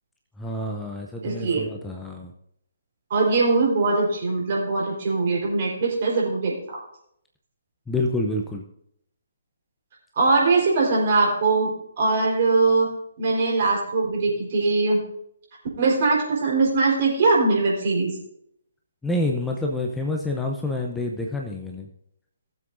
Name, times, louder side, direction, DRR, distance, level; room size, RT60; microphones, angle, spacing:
voice 1, 0.4-2.3 7.9-8.6 19.0-21.9, left 2 dB, 5° left, 1 dB, 0.7 m, -28 dB
voice 2, 1.2-1.7 3.1-6.8 10.2-12.9 13.2-15.0 15.8-18.1, right 3 dB, 45° right, -2 dB, 4.1 m, -21 dB
18.5 x 7.6 x 2.6 m, 0.74 s
figure-of-eight pair, 135°, 0 cm